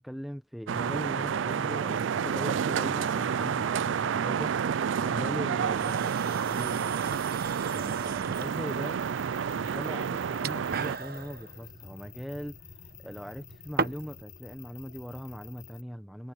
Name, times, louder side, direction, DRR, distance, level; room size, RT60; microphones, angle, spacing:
voice 1, 0.0-7.1 7.4-9.0 9.5-12.6 13.0-16.3, equal, ahead, 1.0 m, -40 dB
sound 1, 0.7-11.0, right 7 dB, 70° right, 0.4 m, -29 dB
sound 2, 5.6-14.2, right 4 dB, 45° right, 1.0 m, -39 dB
sound 3, 8.3-15.8, left 7 dB, 50° left, 4.2 m, -51 dB
head